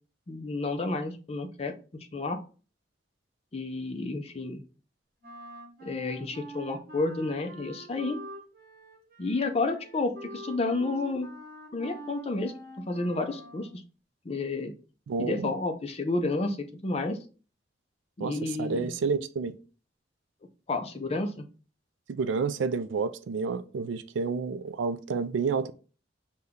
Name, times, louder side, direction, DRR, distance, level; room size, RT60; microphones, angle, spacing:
voice 1, 0.3-2.4 3.5-4.6 5.8-8.2 9.2-11.3 11.7-12.5 12.9-13.8 14.3-14.7 15.2-17.2 18.2-18.9 20.7-21.4, left 3 dB, 30° left, 0.5 m, -31 dB
Wind instrument woodwind instrument, 5.2-13.8, right 1 dB, 50° right, 1.0 m, -45 dB
voice 2, 15.1-15.5 18.2-19.6 22.1-25.7, right 5 dB, 85° right, 0.4 m, -30 dB
5.4 x 2.2 x 3.5 m
head